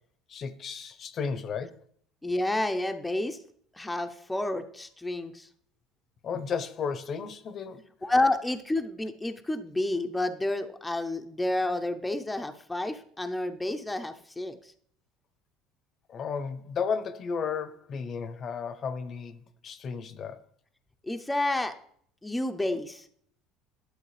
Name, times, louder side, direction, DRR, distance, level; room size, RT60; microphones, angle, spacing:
voice 1, 0.3-1.8 6.2-7.8 16.1-20.4, left 6 dB, 45° left, 0.7 m, -33 dB
voice 2, 2.2-3.4 3.7-5.5 8.0-14.7 21.0-21.7 22.2-23.1, left 2 dB, 10° left, 0.6 m, -30 dB
11.0 x 6.4 x 3.3 m
supercardioid pair, 95°, 0 cm